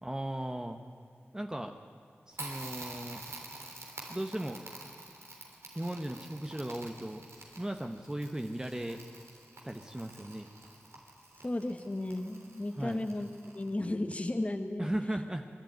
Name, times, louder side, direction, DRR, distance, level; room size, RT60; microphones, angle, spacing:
voice 1, 0.0-0.8 1.3-1.8 2.3-3.2 4.1-4.6 5.7-7.2 7.6-9.0 9.6-10.5 12.7-13.1 14.8-15.5, right 1 dB, 15° right, 4 dB, 1.0 m, -37 dB
Crackle, 2.3-13.9, right 2 dB, 85° right, 3.4 m, -48 dB
voice 2, 11.4-13.3 13.5-14.9, left 1 dB, 30° left, 7 dB, 1.1 m, -34 dB
24.0 x 12.0 x 9.2 m, 2.1 s
wide cardioid pair, 60°, 4 cm